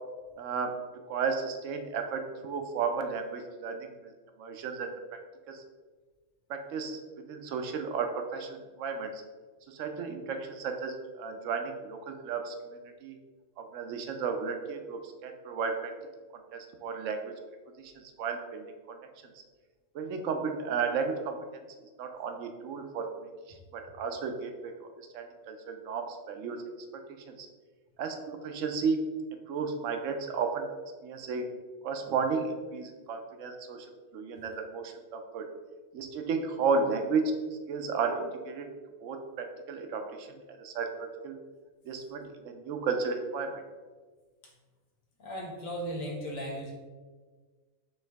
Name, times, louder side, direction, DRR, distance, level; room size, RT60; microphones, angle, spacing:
voice 1, 0.4-0.7 1.1-3.9 4.4-4.9 5.5-5.6 6.5-7.0 7.3-9.1 9.7-13.2 13.6-15.9 16.5-17.3 18.2-19.0 19.9-21.4 22.0-23.3 23.7-26.6 27.3-27.5 28.0-29.1 29.5-30.7 31.0-31.5 31.8-33.9 34.1-35.5 35.9-37.3 37.7-38.7 39.0-40.3 40.6-41.4 41.9-43.6, right 5 dB, 75° right, 5 dB, 0.9 m, -33 dB
voice 2, 45.2-46.7, equal, 90° left, -2 dB, 1.5 m, -36 dB
4.5 x 3.2 x 3.4 m, 1.4 s
omnidirectional pair, 1.4 m